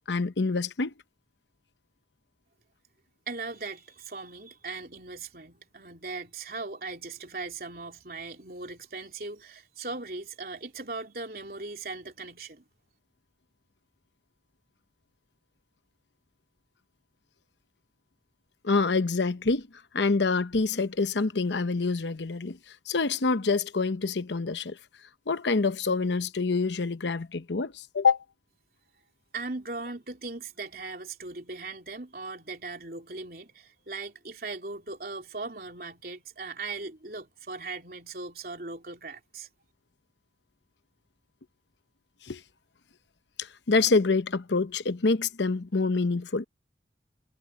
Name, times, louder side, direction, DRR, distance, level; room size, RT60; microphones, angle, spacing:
voice 1, 0.1-0.9 18.6-19.7 19.9-22.6 22.9-24.8 25.3-28.2 42.2-42.4 43.4-46.5, left 4 dB, 85° left, 0.8 m, -26 dB
voice 2, 3.3-12.7 29.3-39.5, right 3 dB, 55° right, 3.7 m, -39 dB
head